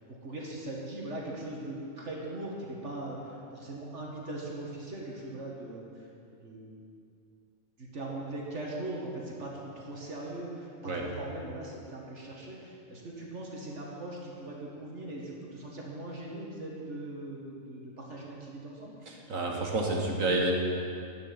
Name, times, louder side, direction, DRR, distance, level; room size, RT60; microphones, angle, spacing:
voice 1, 0.1-6.0 6.3-6.9 7.8-19.0, right 1 dB, 60° right, -3 dB, 2.4 m, -40 dB
voice 2, 19.1-20.5, right 2 dB, 90° right, -1 dB, 2.3 m, -29 dB
14.0 x 6.8 x 9.7 m, 2.5 s
omnidirectional pair, 1.4 m